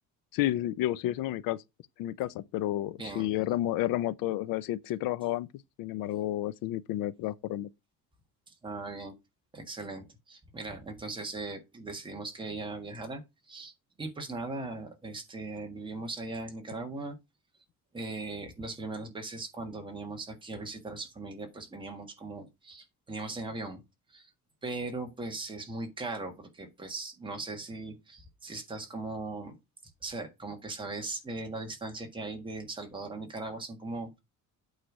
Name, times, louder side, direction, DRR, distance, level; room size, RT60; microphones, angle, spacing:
voice 1, 0.3-1.6 2.0-5.5 5.8-7.7, left 14 dB, 80° left, 0.6 m, -31 dB
voice 2, 3.0-3.3 8.5-9.1 9.5-13.2 13.5-13.7 14.0-17.2 17.9-23.8 24.1-24.3 24.6-29.6 30.0-34.2, right 2 dB, 15° right, 1.5 m, -39 dB
8.8 x 3.4 x 6.1 m
cardioid pair, 175°, 34 cm